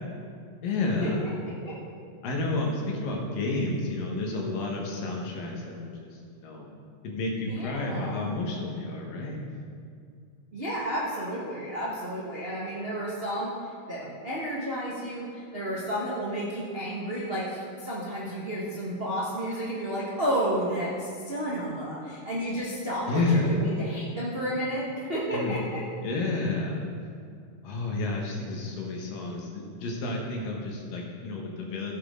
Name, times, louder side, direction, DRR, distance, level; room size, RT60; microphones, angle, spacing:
voice 1, 0.6-1.2 2.2-6.1 6.4-6.7 7.0-9.4 23.1-23.5 25.3-25.6 26.0-26.8 27.6-31.9, left 2 dB, 80° left, -1 dB, 3.1 m, -30 dB
voice 2, 7.5-8.3 10.5-13.5 13.9-25.8, right 1 dB, 50° right, -7 dB, 0.6 m, -31 dB
15.5 x 7.7 x 3.8 m, 2.3 s
omnidirectional pair, 3.8 m